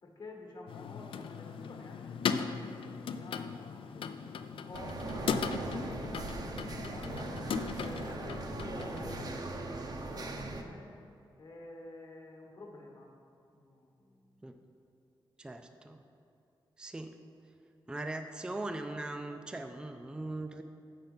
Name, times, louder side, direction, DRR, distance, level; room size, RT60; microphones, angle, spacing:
voice 1, 0.0-7.2 7.7-10.8 11.4-13.1 13.5-14.6, left 2 dB, 50° left, 1 dB, 1.1 m, -50 dB
sound 1, 0.7-9.4, left 6 dB, 80° left, 0.3 m, -38 dB
sound 2, 4.7-10.6, right 2 dB, 45° right, 0.6 m, -39 dB
voice 2, 15.4-16.0 16.8-17.2 17.9-20.6, right 2 dB, 10° right, 6 dB, 0.3 m, -40 dB
7.5 x 5.8 x 5.3 m, 2.6 s
wide cardioid pair, 160°, 9 cm